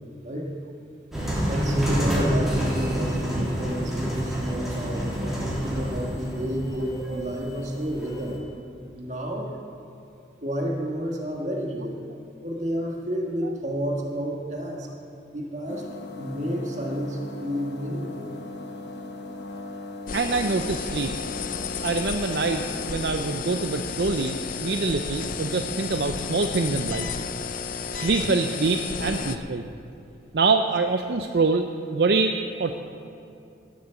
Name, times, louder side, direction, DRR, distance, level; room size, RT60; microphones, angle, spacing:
sound 1, 1.1-8.4, equal, ahead, 3.0 m, -28 dB
voice 1, 1.5-8.4 8.9-9.5 10.4-12.0 12.4-14.9 15.3-15.9 16.2-18.3, equal, 40° right, 0 dB, 1.8 m, -30 dB
sound 2, 15.7-22.9, left 2 dB, 65° left, 1.2 m, -38 dB
sound 3, 20.1-29.4, left 5 dB, 45° left, 0.5 m, -32 dB
voice 2, 20.1-21.1 21.8-27.1 27.9-29.7 30.3-32.3 32.6-32.8, right 3 dB, 60° right, 6 dB, 0.5 m, -25 dB
16.5 x 7.8 x 7.1 m, 2.7 s
head